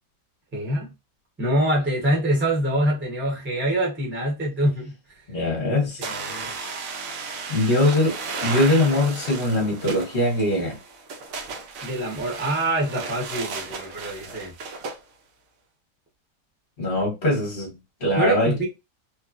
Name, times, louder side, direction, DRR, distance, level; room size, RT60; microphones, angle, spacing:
voice 1, 0.5-0.9 1.4-4.9 6.2-6.5 11.8-14.5 18.2-18.7, right 1 dB, 10° right, 0.6 m, -25 dB
voice 2, 5.3-6.0 7.5-8.1 8.4-10.8 16.8-17.7 18.0-18.5, left 1 dB, 35° left, 1.0 m, -22 dB
sound 1, 6.0-15.0, right 4 dB, 65° right, 0.9 m, -34 dB
3.1 x 2.2 x 2.4 m
omnidirectional pair, 1.8 m